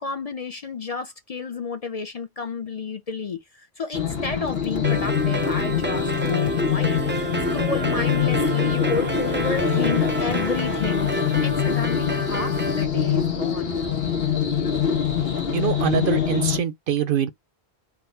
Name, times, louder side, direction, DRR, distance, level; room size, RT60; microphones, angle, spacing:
voice 1, 0.0-3.4 3.8-13.7, left 4 dB, 40° left, 0.7 m, -31 dB
sound 1, 3.9-16.6, left 8 dB, 65° left, 1.4 m, -24 dB
sound 2, 4.8-12.8, right 2 dB, 20° right, 0.3 m, -30 dB
voice 2, 15.5-17.3, right 8 dB, 60° right, 0.7 m, -24 dB
3.8 x 2.2 x 4.1 m
omnidirectional pair, 1.1 m